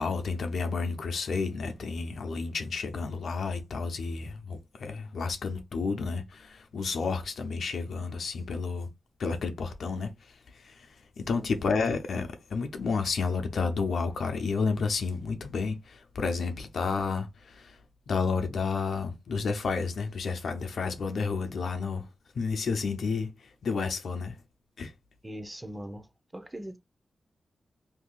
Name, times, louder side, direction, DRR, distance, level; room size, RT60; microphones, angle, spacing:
voice 1, 0.0-8.9 9.2-17.8 18.1-22.1 22.3-24.4 24.8-24.9, left 4 dB, 75° left, 0.6 m, -31 dB
voice 2, 25.2-26.0 26.3-26.8, equal, 20° right, 0.7 m, -40 dB
2.7 x 2.4 x 3.8 m
cardioid pair, 60°, 0 cm